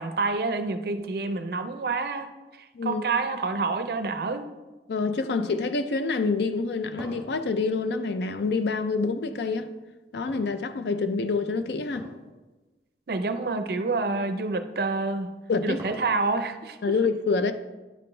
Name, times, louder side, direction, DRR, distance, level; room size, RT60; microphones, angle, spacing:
voice 1, 0.0-2.3 2.8-4.5 13.1-15.3 15.6-16.9, right 3 dB, 55° right, 0.5 m, -28 dB
voice 2, 4.9-9.7 10.1-12.1 15.5-15.8 16.8-17.5, left 4 dB, 75° left, 0.4 m, -27 dB
sound 1, 6.6-8.9 10.3-11.1 11.9-12.3 12.6-12.7 13.5-13.6 15.0-16.5, right 1 dB, 15° right, 2.1 m, -44 dB
9.9 x 4.2 x 3.2 m
head